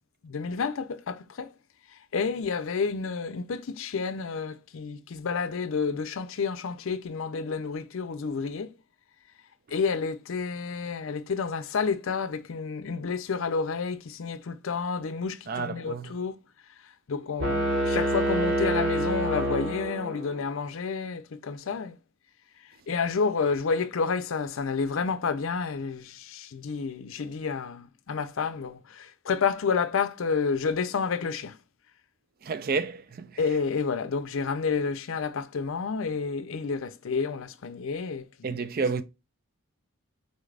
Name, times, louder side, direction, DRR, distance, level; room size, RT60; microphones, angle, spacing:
voice 1, 0.2-1.5 2.1-8.7 9.7-16.4 17.1-22.0 22.9-31.5 33.4-38.5, left 5 dB, 70° left, 0.5 m, -30 dB
voice 2, 15.5-16.1 32.4-33.4 38.4-39.0, right 4 dB, 45° right, 0.4 m, -30 dB
sound 1, 17.4-20.4, right 1 dB, 60° right, 1.3 m, -27 dB
4.2 x 3.2 x 2.4 m
head